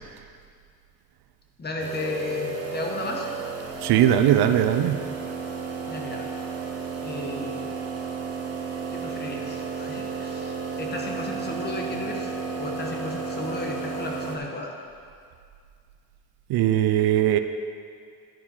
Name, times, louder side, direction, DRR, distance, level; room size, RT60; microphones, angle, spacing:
voice 1, 1.6-3.3 5.8-6.3 7.0-7.7 8.9-12.3 12.6-14.7, left 2 dB, 25° left, 0 dB, 1.2 m, -34 dB
sound 1, 1.8-14.4, right 5 dB, 40° right, 1.1 m, -33 dB
voice 2, 3.8-5.0 16.5-17.4, right 11 dB, 80° right, 9 dB, 0.6 m, -20 dB
11.0 x 5.0 x 5.5 m, 2.2 s
cardioid pair, 145°, 38 cm